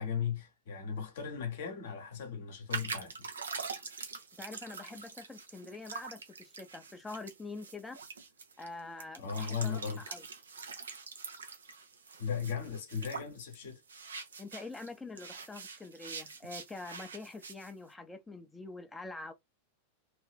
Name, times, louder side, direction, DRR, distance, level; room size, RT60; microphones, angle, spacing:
voice 1, 0.0-3.3 9.2-10.1 12.2-13.8, left 7 dB, 60° left, 1.0 m, -37 dB
sound 1, 2.7-14.9 15.2-17.7, right 5 dB, 70° right, 0.7 m, -44 dB
voice 2, 4.4-8.0 8.6-10.2 14.4-19.3, left 3 dB, 10° left, 0.7 m, -45 dB
3.0 x 2.7 x 3.4 m
figure-of-eight pair, 90°, 0 cm